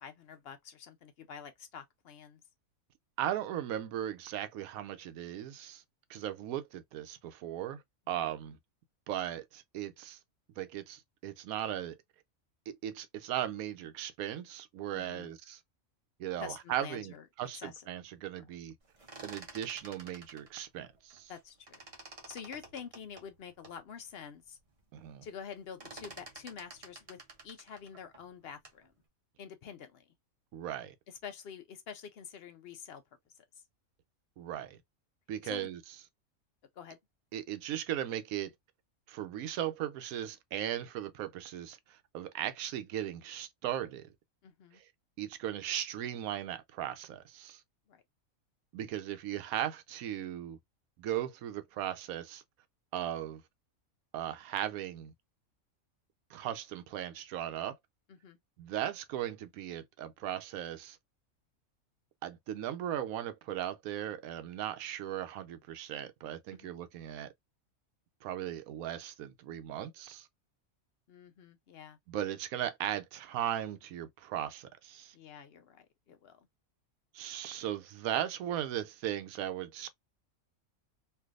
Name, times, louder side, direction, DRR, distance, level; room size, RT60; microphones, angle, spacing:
voice 1, 0.0-2.4 8.2-8.3 14.9-15.3 16.4-17.3 17.5-17.9 18.4-18.5 21.3-21.8 22.3-24.6 25.2-28.9 29.4-30.1 31.1-33.0 33.3-33.4 35.4-35.7 36.8-37.0 44.4-44.8 47.9-48.0 58.1-58.4 66.5-66.7 71.1-72.0 75.1-76.5, left 7 dB, 60° left, 0.6 m, -47 dB
voice 2, 3.2-5.8 6.1-8.6 9.1-10.2 10.6-12.0 12.7-15.6 16.2-18.7 19.2-21.3 24.9-25.2 30.5-30.9 34.4-34.8 35.3-35.8 37.3-38.5 39.1-44.1 44.7-44.8 45.2-47.6 48.7-50.6 51.0-52.4 52.9-53.4 54.1-55.1 56.3-57.8 58.6-61.0 62.2-67.3 68.2-70.3 72.1-75.1 77.1-79.9, right 11 dB, 80° right, 1.0 m, -37 dB
sound 1, 18.8-21.4 21.7-23.8 24.3-24.4 24.7-25.1 25.3-28.9, right 3 dB, 40° right, 0.5 m, -51 dB
3.3 x 2.6 x 2.3 m
omnidirectional pair, 1.5 m